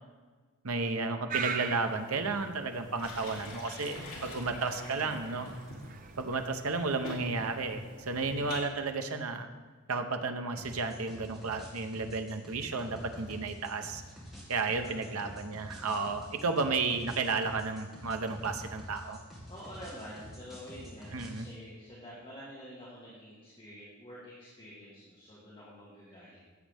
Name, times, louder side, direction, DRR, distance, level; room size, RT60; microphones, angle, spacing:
voice 1, 0.6-5.5 6.2-9.5 9.9-14.0 14.5-19.2 21.1-21.5, right 4 dB, 85° right, 6 dB, 0.9 m, -33 dB
sound 1, 1.3-8.7, right 6 dB, 40° right, 0.6 m, -43 dB
sound 2, 2.7-8.7, left 2 dB, 70° left, 2.5 m, -46 dB
voice 2, 4.4-5.6 8.1-8.6 12.7-13.4 14.7-15.3 16.4-16.6 19.5-26.4, equal, 25° left, -8 dB, 1.9 m, -48 dB
sound 3, 10.6-21.5, equal, ahead, 2.3 m, -48 dB
16.0 x 7.5 x 3.5 m, 1.4 s
head